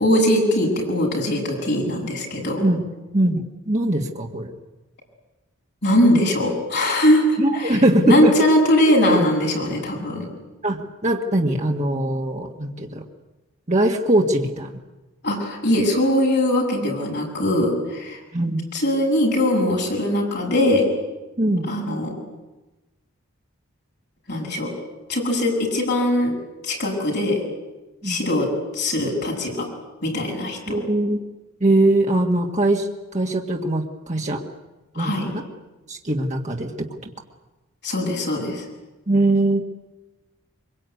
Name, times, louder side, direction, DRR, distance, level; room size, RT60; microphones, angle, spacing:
voice 1, 0.0-2.6 5.8-10.3 15.2-18.2 18.7-20.9 21.7-22.2 24.3-24.7 25.1-26.3 26.6-27.4 28.0-29.7 30.0-30.7 35.0-35.3 37.8-38.6, left 1 dB, 50° left, -1 dB, 7.8 m, -21 dB
voice 2, 3.1-4.5 7.4-8.3 10.6-13.0 13.7-14.8 18.3-18.6 21.4-21.7 28.0-28.2 30.7-31.2 31.6-34.4 35.0-35.4 35.9-36.9 39.1-39.6, right 1 dB, 35° right, 1 dB, 1.8 m, -21 dB
24.0 x 23.0 x 9.4 m, 1.1 s
head